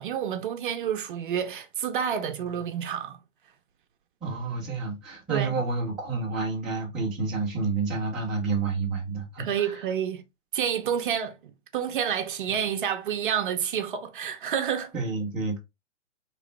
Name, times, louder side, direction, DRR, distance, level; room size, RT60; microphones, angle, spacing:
voice 1, 0.0-3.2 5.3-5.5 9.4-10.2 10.5-14.9, right 8 dB, 40° right, 0.6 m, -29 dB
voice 2, 4.2-9.8 14.9-15.6, right 4 dB, ahead, 0.4 m, -29 dB
3.8 x 3.0 x 3.2 m
hypercardioid pair, 145°, 38 cm